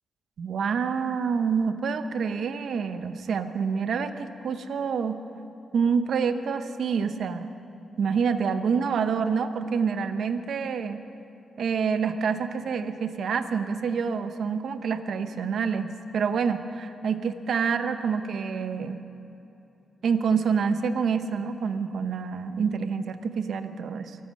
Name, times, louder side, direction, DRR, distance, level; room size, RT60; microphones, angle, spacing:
voice 1, 0.4-5.2 5.7-7.5 8.0-11.0 11.6-19.0 20.0-24.2, right 6 dB, 75° right, 10 dB, 0.9 m, -27 dB
24.0 x 9.3 x 6.4 m, 2.8 s
cardioid pair, 70°, 0 cm